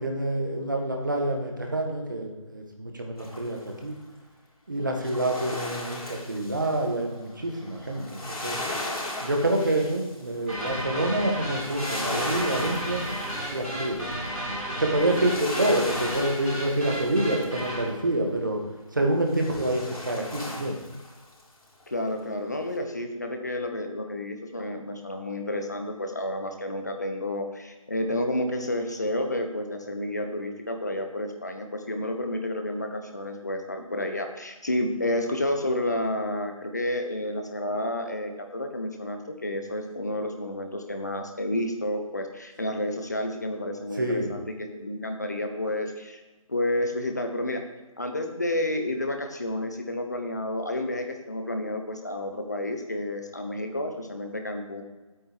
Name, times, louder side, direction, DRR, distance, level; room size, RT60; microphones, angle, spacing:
voice 1, 0.0-4.0 4.7-8.6 9.2-13.1 13.5-14.1 14.8-18.6 18.9-20.8 43.9-44.3, right 1 dB, 35° right, 2 dB, 1.6 m, -27 dB
sound 1, 3.2-3.8 4.9-17.7 19.3-21.4 21.8-21.9, left 1 dB, 90° left, 3.8 m, -37 dB
sound 2, 10.5-17.9, right 1 dB, ahead, 1.7 m, -33 dB
voice 2, 21.9-46.2 46.5-47.6 48.0-54.8, left 1 dB, 30° left, 5 dB, 0.9 m, -30 dB
9.3 x 8.9 x 4.5 m, 1.2 s
figure-of-eight pair, 180°, 18 cm